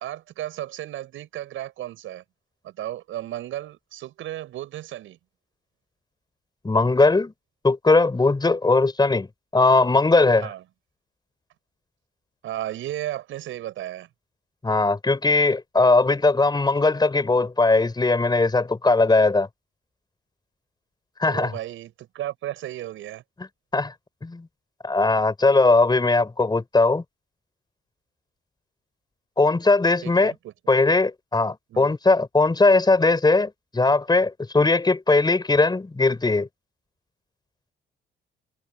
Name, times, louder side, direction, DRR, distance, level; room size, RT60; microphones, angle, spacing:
voice 1, 0.0-2.2 2.6-5.2 10.4-10.6 12.4-14.1 21.3-23.2 30.0-30.5 31.7-31.9, right 13 dB, 80° right, 7.9 m, -34 dB
voice 2, 6.6-7.3 7.6-9.3 9.5-10.5 14.6-19.5 21.2-21.6 23.7-23.9 24.2-24.5 24.8-27.0 29.4-30.3 30.7-36.5, left 3 dB, 20° left, 5.8 m, -19 dB
cardioid pair, 90°, 20 cm